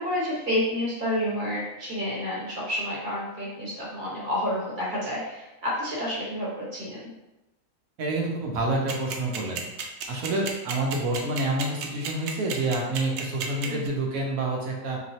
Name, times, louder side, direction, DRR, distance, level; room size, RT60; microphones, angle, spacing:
voice 1, 0.0-7.1 13.6-13.8, left 1 dB, 35° right, -7 dB, 1.3 m, -29 dB
voice 2, 8.0-9.6 10.1-15.0, right 2 dB, 80° right, -1 dB, 1.2 m, -28 dB
sound 1, 8.9-13.9, right 7 dB, 65° right, 0.8 m, -32 dB
4.1 x 3.1 x 2.8 m, 1.0 s
omnidirectional pair, 1.4 m